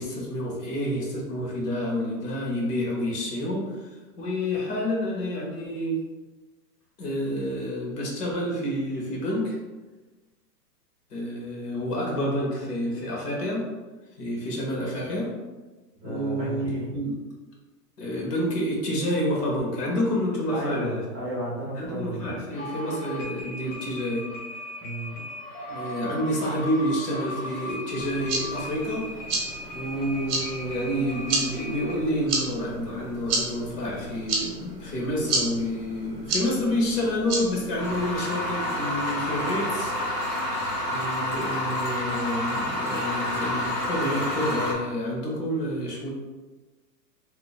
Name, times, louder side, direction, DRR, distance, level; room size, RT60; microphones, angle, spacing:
voice 1, 0.0-3.9 4.2-6.0 7.0-9.6 11.1-13.7 14.2-15.3 16.0-17.2 18.0-21.0 21.8-24.2 25.7-29.1 29.7-40.0 40.9-46.1, equal, 70° left, -2 dB, 1.3 m, -29 dB
voice 2, 16.0-17.0 20.5-22.3 24.8-25.1, right 1 dB, 15° right, -15 dB, 0.5 m, -33 dB
sound 1, 22.5-31.9, left 1 dB, 30° left, 0.8 m, -38 dB
sound 2, 28.0-38.2, right 2 dB, 35° right, 0.8 m, -32 dB
sound 3, 37.8-44.7, left 1 dB, 90° left, 1.4 m, -28 dB
2.9 x 2.2 x 3.9 m, 1.2 s
hypercardioid pair, 165°, 49 cm